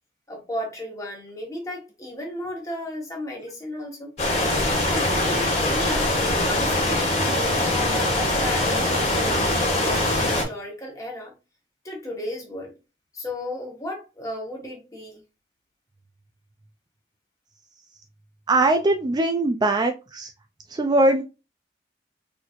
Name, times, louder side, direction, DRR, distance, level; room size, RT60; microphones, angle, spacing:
voice 1, 0.3-4.1 4.9-7.2 7.5-11.3 11.8-12.8 13.1-15.2, left 1 dB, 20° left, 1.3 m, -34 dB
sound 1, 4.2-10.4, left 1 dB, 40° left, 1.6 m, -22 dB
voice 2, 18.5-20.3 20.8-21.2, right 2 dB, 25° right, 0.4 m, -21 dB
4.1 x 3.1 x 2.5 m
head